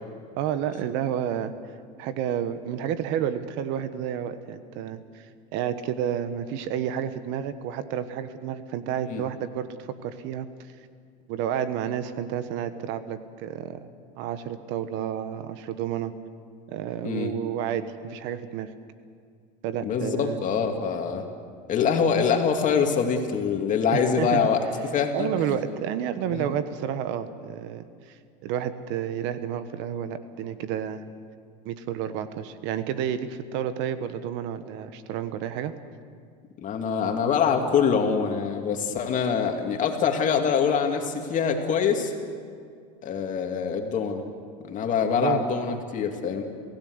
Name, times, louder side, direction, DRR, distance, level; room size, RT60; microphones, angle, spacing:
voice 1, 0.4-1.5 2.0-5.3 5.5-10.5 11.3-13.9 14.2-16.1 16.7-18.7 19.6-20.4 23.9-24.4 25.1-31.0 31.6-35.7 45.0-45.4, right 9 dB, 60° right, 12 dB, 1.3 m, -30 dB
voice 2, 19.8-21.2 21.7-24.6 24.9-25.6 26.3-26.5 36.6-42.1 43.0-44.2 44.6-46.4, left 6 dB, 35° left, 4 dB, 2.6 m, -24 dB
28.0 x 16.0 x 8.1 m, 2.2 s
supercardioid pair, 120°, 21 cm